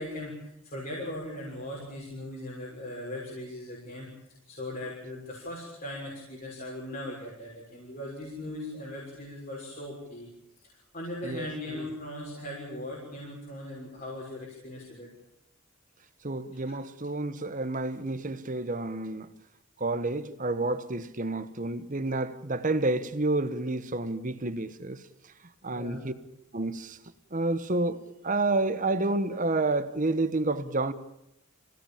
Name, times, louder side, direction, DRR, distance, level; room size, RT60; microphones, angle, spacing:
voice 1, 0.0-4.1 4.5-10.3 10.6-15.1 16.7-16.8 25.7-26.1, left 1 dB, 40° left, 6.4 m, -39 dB
voice 2, 16.2-19.3 19.8-25.0 25.6-26.1 26.5-27.0 27.3-30.9, right 2 dB, 35° right, 1.2 m, -29 dB
26.5 x 17.5 x 8.9 m
head